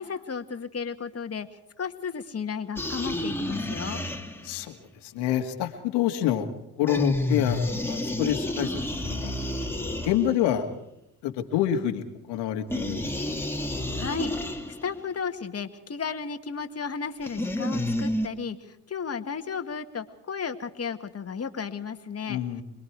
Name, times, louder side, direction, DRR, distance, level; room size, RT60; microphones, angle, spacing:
voice 1, 0.0-1.5 1.8-4.0 13.9-14.5 14.8-22.6, left 6 dB, 35° left, 7 dB, 2.1 m, -34 dB
sound 1, 2.8-4.6 6.9-10.6 12.7-15.0 17.2-18.3, left 1 dB, 5° left, 2.8 m, -30 dB
voice 2, 4.4-4.8 5.0-6.5 6.8-8.8 9.1-9.3 10.0-10.7 11.2-13.4 22.3-22.6, left 11 dB, 85° left, 5 dB, 2.4 m, -27 dB
27.5 x 21.5 x 4.8 m, 0.84 s
supercardioid pair, 75°, 40 cm